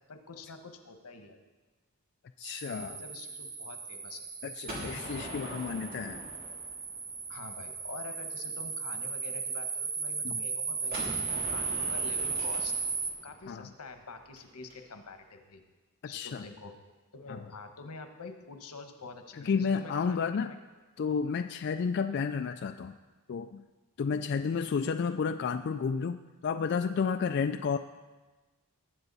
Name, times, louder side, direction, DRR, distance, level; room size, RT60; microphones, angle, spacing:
voice 1, 0.1-1.4 2.6-4.3 7.3-11.0 11.3-12.7 13.2-15.6 16.0-16.7 17.1-20.5 24.6-24.7, left 3 dB, 85° left, 6 dB, 1.2 m, -46 dB
voice 2, 2.4-3.0 4.4-6.2 10.2-10.4 13.5-13.7 16.0-16.4 19.4-20.6 21.0-23.0 23.3-23.6 24.0-27.8, left 5 dB, 50° left, 7 dB, 0.3 m, -31 dB
sound 1, 2.4-13.1, right 5 dB, 65° right, 1.4 m, -36 dB
Gunshot gunfire, 4.7-7.5 10.9-14.7, equal, 40° right, 3.0 m, -43 dB
19.0 x 7.8 x 4.1 m, 1.2 s
head